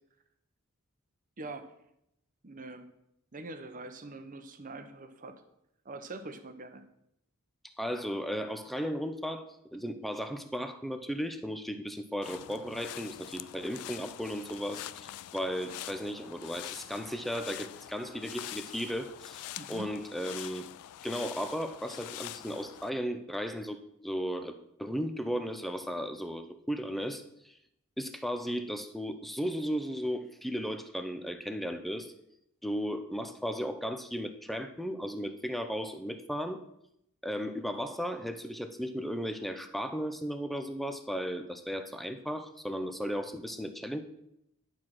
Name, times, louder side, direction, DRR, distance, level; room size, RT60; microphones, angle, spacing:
voice 1, 1.4-1.7 2.4-2.9 3.3-5.4 5.8-6.9 19.6-19.9, right 2 dB, 35° right, 8 dB, 0.8 m, -43 dB
voice 2, 7.6-20.7 21.0-23.8 24.0-27.5 28.0-32.1 32.6-36.6 37.2-44.0, equal, ahead, 8 dB, 0.5 m, -35 dB
sound 1, 12.2-22.9, left 13 dB, 90° left, 0.3 m, -45 dB
10.5 x 4.6 x 6.0 m, 0.81 s
head